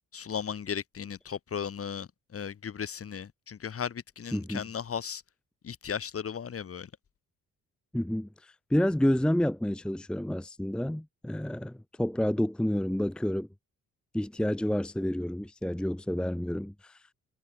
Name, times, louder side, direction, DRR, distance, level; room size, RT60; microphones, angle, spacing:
voice 1, 0.1-5.2 5.6-6.9, left 7 dB, 50° left, 4.2 m, -36 dB
voice 2, 4.3-4.6 7.9-13.5 14.1-17.0, equal, 5° left, 0.8 m, -29 dB
cardioid pair, 90°, 30 cm